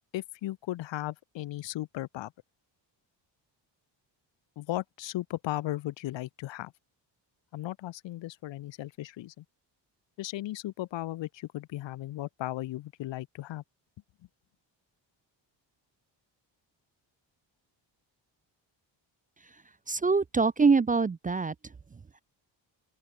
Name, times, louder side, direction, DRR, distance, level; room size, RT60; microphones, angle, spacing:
voice 1, 0.1-2.3 4.6-6.7 7.5-9.4 10.2-13.6, left 15 dB, 75° left, 0.9 m, -36 dB
voice 2, 19.9-21.5, right 4 dB, 20° right, 0.5 m, -24 dB
open air
cardioid pair, 125°, 45 cm